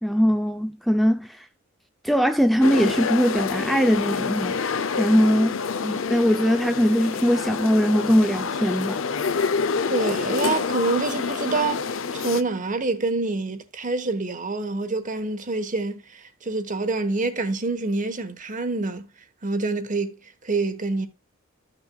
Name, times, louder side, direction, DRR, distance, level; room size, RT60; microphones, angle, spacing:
voice 1, 0.0-1.5 2.0-4.6 5.0-9.0, equal, ahead, 0.4 m, -21 dB
sound 1, 2.6-12.4, left 5 dB, 70° left, 0.6 m, -27 dB
voice 2, 9.9-19.1 19.4-21.1, right 3 dB, 40° right, 1.1 m, -27 dB
14.0 x 6.1 x 2.3 m
head